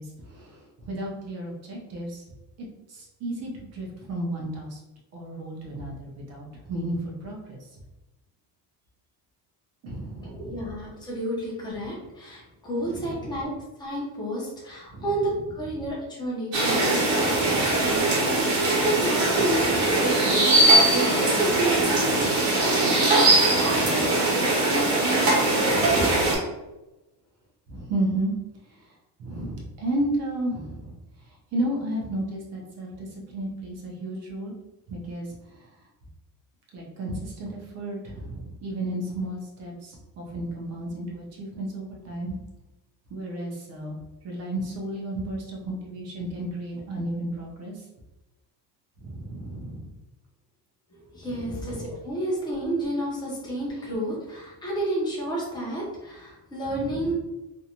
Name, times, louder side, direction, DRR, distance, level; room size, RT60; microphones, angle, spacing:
voice 1, 0.0-2.3 2.9-4.8 5.1-7.7 9.8-10.6 12.9-13.3 14.9-15.1 17.3-17.9 19.5-19.8 23.5-24.0 25.7-26.0 27.7-28.3 28.6-34.5 34.9-35.7 36.7-42.4 43.1-44.0 44.2-47.8 49.0-49.9 51.3-51.9 56.7-57.2, right 1 dB, 40° right, -2 dB, 0.5 m, -33 dB
voice 2, 10.2-26.4 50.9-57.2, right 1 dB, 10° left, -5 dB, 0.5 m, -31 dB
sound 1, 16.5-26.3, right 2 dB, 55° right, 1.0 m, -21 dB
2.5 x 2.1 x 2.8 m, 1.0 s
cardioid pair, 175°, 42 cm